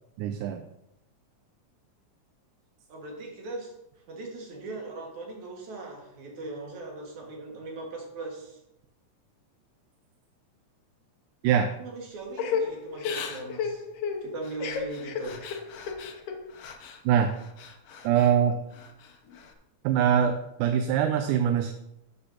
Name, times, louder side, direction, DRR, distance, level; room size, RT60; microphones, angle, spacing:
voice 1, 0.2-0.6 11.4-11.7 17.1-17.3 18.0-18.6 19.8-21.7, right 8 dB, 80° right, 7 dB, 2.1 m, -23 dB
voice 2, 2.9-3.7 4.1-8.6 11.7-13.9 14.2-15.4, right 2 dB, 65° right, -1 dB, 3.2 m, -39 dB
Crying sobbing / Breathing, 12.4-17.0 17.4-18.3 18.7-19.5, left 6 dB, 70° left, 1.5 m, -34 dB
12.0 x 7.8 x 2.9 m, 0.85 s
omnidirectional pair, 3.7 m